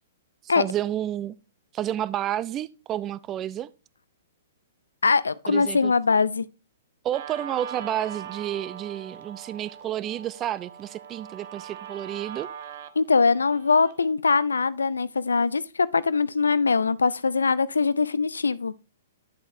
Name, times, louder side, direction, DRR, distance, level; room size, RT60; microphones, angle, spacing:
voice 1, 0.4-1.4 1.7-3.7 5.5-5.9 7.0-12.5, right 11 dB, 25° right, 0.4 m, -30 dB
voice 2, 5.0-6.5 13.0-18.7, left 4 dB, 85° left, 0.4 m, -22 dB
Guitar, 7.1-14.1, right 8 dB, 55° right, 0.8 m, -41 dB
9.2 x 7.8 x 2.6 m
hypercardioid pair, 120°, 0 cm